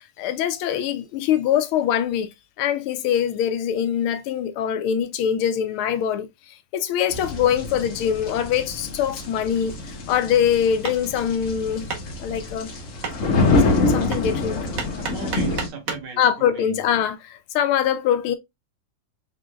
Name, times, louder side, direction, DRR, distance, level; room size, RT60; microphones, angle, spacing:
voice 1, 0.2-2.3 2.6-6.3 6.7-9.8 10.1-11.9 12.2-12.7 13.8-14.6 16.2-18.4, left 9 dB, 85° left, 1.5 m, -23 dB
sound 1, 7.1-15.7, left 3 dB, 50° left, 1.0 m, -26 dB
Hammer, 10.8-16.1, right 4 dB, 50° right, 1.2 m, -35 dB
voice 2, 15.0-16.8, right 6 dB, 75° right, 2.1 m, -36 dB
5.1 x 3.6 x 2.3 m
omnidirectional pair, 2.3 m